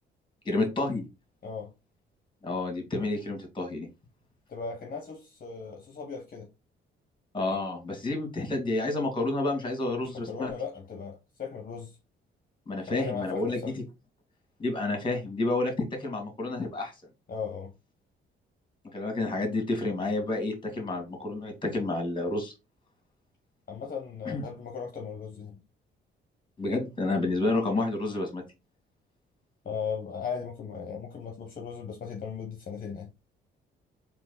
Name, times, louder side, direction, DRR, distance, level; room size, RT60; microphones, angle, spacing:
voice 1, 0.4-1.1 2.4-3.9 7.3-10.5 12.7-13.6 14.6-16.9 18.9-22.5 24.2-24.5 26.6-28.4, left 2 dB, 25° left, 2.3 m, -29 dB
voice 2, 4.5-6.5 10.1-12.0 12.9-13.7 17.3-17.7 23.7-25.6 29.6-33.1, left 6 dB, 45° left, 1.3 m, -37 dB
3.9 x 3.1 x 4.0 m
cardioid pair, 90°, 20 cm